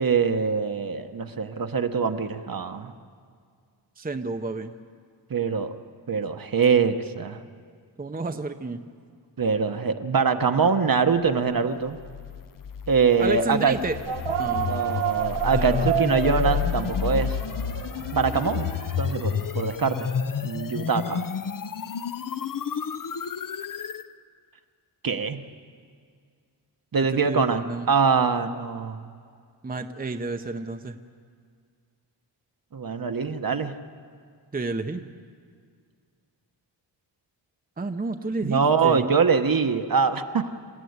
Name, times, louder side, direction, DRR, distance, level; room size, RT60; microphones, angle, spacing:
voice 1, 0.0-2.9 5.3-5.7 6.1-7.4 9.4-12.0 12.9-13.7 14.5-17.4 18.1-18.7 19.0-20.1 20.4-21.3 25.0-25.4 26.9-29.1 32.7-33.7 38.4-40.5, right 5 dB, 50° right, 7 dB, 1.1 m, -23 dB
voice 2, 4.0-4.7 8.0-8.8 13.2-14.0 14.4-15.0 15.5-15.9 26.9-27.9 29.6-31.0 34.5-35.1 37.8-39.0, right 3 dB, 20° right, 6 dB, 0.8 m, -31 dB
sound 1, 11.9-24.1, left 7 dB, 50° left, 0.7 m, -30 dB
sound 2, 14.1-19.9, right 8 dB, 75° right, 1.0 m, -30 dB
27.5 x 14.5 x 9.5 m, 2.1 s
wide cardioid pair, 115°, 44 cm